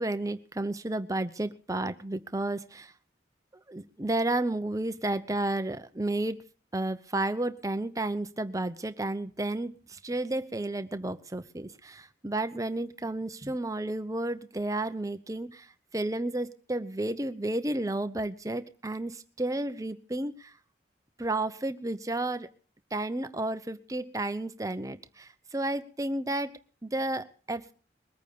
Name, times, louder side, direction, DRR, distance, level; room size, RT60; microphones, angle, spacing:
voice 1, 0.0-2.9 3.7-6.4 6.7-15.7 15.9-20.5 21.2-22.5 22.9-27.7, right 2 dB, 20° right, 10 dB, 0.8 m, -32 dB
21.5 x 9.1 x 6.7 m, 0.43 s
head